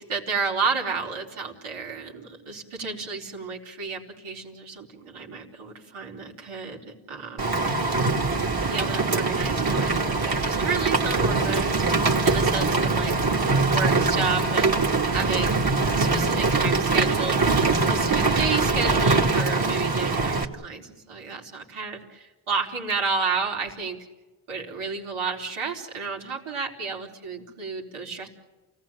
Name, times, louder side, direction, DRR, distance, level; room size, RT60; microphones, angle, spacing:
voice 1, 0.0-8.1 8.7-11.8 12.2-13.2 13.7-24.0 24.5-28.3, right 5 dB, 90° right, 0 dB, 4.3 m, -31 dB
Rain, 7.4-20.4, right 3 dB, 45° right, 3.0 m, -23 dB
29.0 x 18.0 x 9.0 m, 1.2 s
cardioid pair, 50°, 48 cm